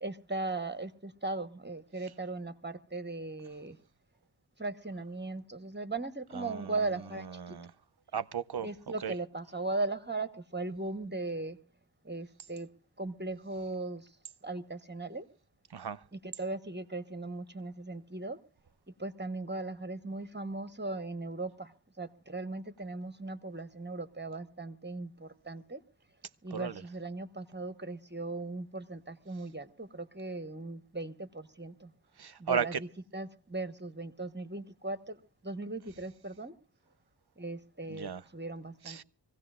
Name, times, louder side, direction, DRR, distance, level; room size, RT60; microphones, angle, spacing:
voice 1, 0.0-3.8 4.6-7.6 8.6-11.6 12.0-12.7 13.0-14.1 14.4-15.3 16.2-18.4 19.0-25.8 26.4-31.9 32.4-32.9 33.1-36.5 37.4-39.0, right 2 dB, 25° right, 1.2 m, -38 dB
voice 2, 6.3-6.8 7.2-7.7 8.1-8.7 9.0-9.1 15.7-16.0 26.5-26.8 32.2-32.8 37.9-38.2 38.8-39.0, right 7 dB, 60° right, 0.7 m, -35 dB
25.0 x 16.5 x 2.4 m
wide cardioid pair, 45°, 44 cm